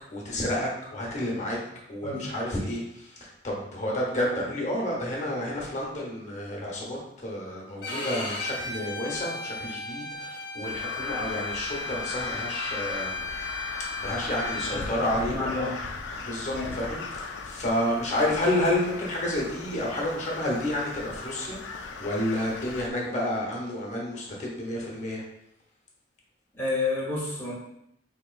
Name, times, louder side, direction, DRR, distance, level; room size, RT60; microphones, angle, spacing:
voice 1, 0.1-1.6 1.9-13.3 14.0-15.7 16.2-25.2, left 1 dB, 40° left, -3 dB, 1.0 m, -30 dB
Bowed string instrument, 7.8-14.8, left 3 dB, 65° left, 0.9 m, -35 dB
Crow, 10.6-22.9, left 4 dB, 90° left, 0.5 m, -38 dB
voice 2, 15.3-15.7 16.5-16.7 26.5-27.5, left 3 dB, 15° left, -7 dB, 1.0 m, -30 dB
5.0 x 3.0 x 2.4 m, 0.79 s
head